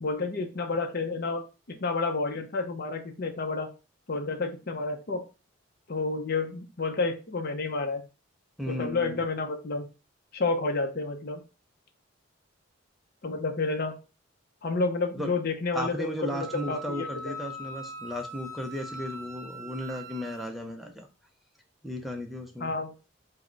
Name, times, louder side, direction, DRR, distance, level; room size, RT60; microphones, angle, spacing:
voice 1, 0.0-3.7 4.1-5.2 5.9-8.0 8.7-9.9 10.3-11.4 13.2-14.0 14.6-17.1 22.6-22.9, left 3 dB, 50° left, 4 dB, 0.6 m, -30 dB
voice 2, 8.6-9.2 15.1-15.3 15.7-21.1 21.8-22.7, equal, ahead, 3 dB, 0.5 m, -35 dB
Wind instrument woodwind instrument, 16.3-20.5, equal, 70° right, 0.6 m, -41 dB
4.8 x 2.1 x 4.4 m, 0.31 s
head